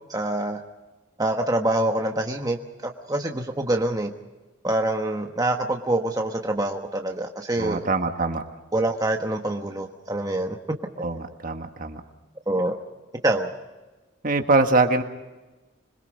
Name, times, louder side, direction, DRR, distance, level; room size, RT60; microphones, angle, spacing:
voice 1, 0.1-0.6 1.2-4.1 4.6-7.8 8.7-10.6 12.5-12.8 13.2-13.5, right 1 dB, 20° right, 3 dB, 1.2 m, -25 dB
voice 2, 7.6-8.4 11.0-12.0 14.2-15.0, right 3 dB, 45° right, 6 dB, 1.6 m, -23 dB
26.0 x 22.0 x 5.3 m, 1.2 s
head